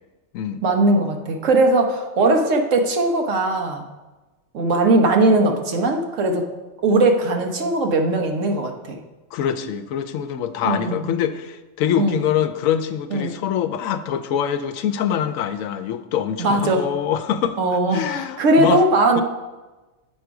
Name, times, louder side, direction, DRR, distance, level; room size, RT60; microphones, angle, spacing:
voice 1, 0.6-3.8 4.5-6.5 6.8-9.0 10.6-11.0 12.0-12.2 13.1-13.3 16.4-16.9 17.6-19.2, right 2 dB, 75° right, 3 dB, 1.3 m, -19 dB
voice 2, 9.3-17.6 17.9-18.8 19.2-19.3, left 9 dB, 85° left, 12 dB, 1.0 m, -24 dB
7.7 x 5.1 x 4.7 m, 1.1 s
omnidirectional pair, 1.4 m